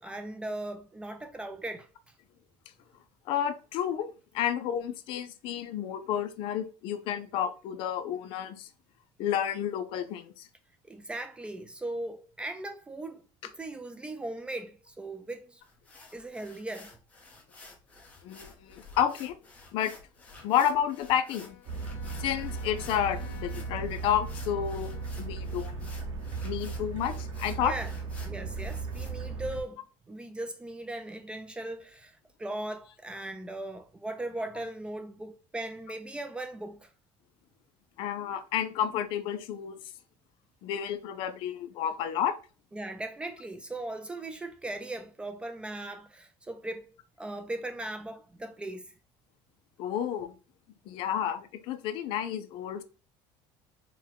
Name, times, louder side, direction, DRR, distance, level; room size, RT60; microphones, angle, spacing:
voice 1, 0.0-1.9 10.8-15.6 16.1-17.0 27.6-27.9 28.2-36.9 42.7-46.9 47.2-48.9, right 2 dB, 10° right, 0.3 m, -38 dB
voice 2, 3.3-8.7 9.2-10.5 18.2-19.4 19.7-19.9 20.4-21.6 22.2-24.9 25.2-25.7 26.4-27.7 38.0-39.7 40.6-42.4 49.8-50.3 50.9-52.8, left 9 dB, 55° left, 0.5 m, -31 dB
sound 1, 15.6-29.1, left 3 dB, 15° left, 0.8 m, -52 dB
Bowed string instrument, 20.2-25.5, left 10 dB, 70° left, 0.9 m, -54 dB
sound 2, 21.7-29.6, right 4 dB, 40° right, 0.8 m, -36 dB
4.6 x 2.2 x 3.5 m
cardioid pair, 165°, 10 cm